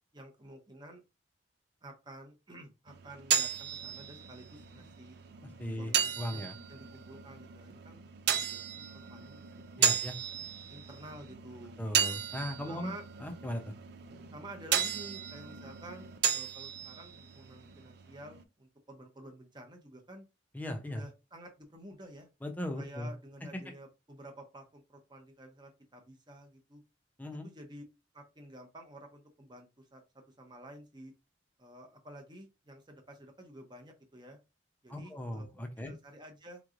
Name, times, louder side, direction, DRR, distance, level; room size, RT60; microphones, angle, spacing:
voice 1, 0.1-1.0 1.8-5.2 5.7-9.5 9.8-10.0 10.7-11.8 12.7-13.0 14.3-20.3 20.9-22.3 22.7-26.8 27.4-27.8 28.1-31.1 31.6-34.4 34.8-35.5 35.8-36.6, right 1 dB, 25° right, 4 dB, 0.8 m, -50 dB
sound 1, 2.9-18.4, right 8 dB, 60° right, 0.4 m, -35 dB
voice 2, 5.6-6.5 9.8-10.2 11.8-12.9 13.2-13.7 20.5-21.0 22.4-23.1 27.2-27.4 34.9-35.9, left 1 dB, 10° left, 3 dB, 0.6 m, -38 dB
3.6 x 3.1 x 2.5 m, 0.27 s
head